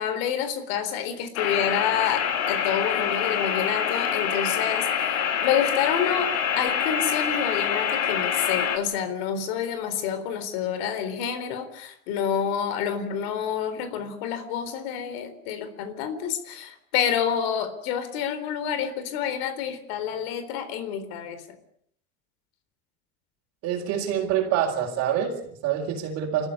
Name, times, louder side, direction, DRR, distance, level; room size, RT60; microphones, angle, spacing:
voice 1, 0.0-21.6, left 8 dB, 70° left, 10 dB, 4.0 m, -28 dB
sound 1, 1.4-8.8, left 8 dB, 50° left, 2.7 m, -26 dB
voice 2, 23.6-26.5, right 9 dB, 50° right, -4 dB, 4.1 m, -26 dB
29.5 x 14.5 x 8.6 m, 0.69 s
cardioid pair, 165°, 32 cm